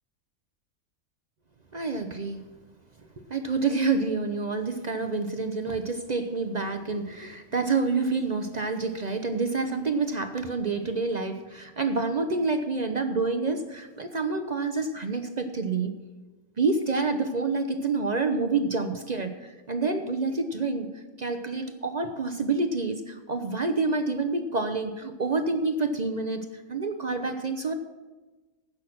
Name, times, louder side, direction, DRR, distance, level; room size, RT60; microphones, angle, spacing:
voice 1, 1.7-2.5 3.3-16.0 16.6-20.9 21.2-27.7, right 3 dB, 40° right, 7 dB, 0.6 m, -28 dB
15.5 x 6.4 x 6.1 m, 1.2 s
omnidirectional pair, 1.5 m